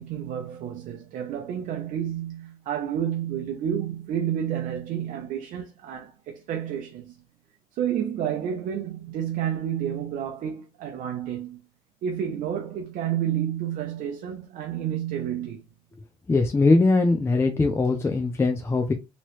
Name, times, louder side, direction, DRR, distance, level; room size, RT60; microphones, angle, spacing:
voice 1, 0.0-7.2 7.7-11.6 12.0-15.6, right 9 dB, 70° right, 0.6 m, -30 dB
voice 2, 16.3-18.9, left 3 dB, 20° left, 0.5 m, -21 dB
3.0 x 2.9 x 3.0 m
cardioid pair, 95°, 14 cm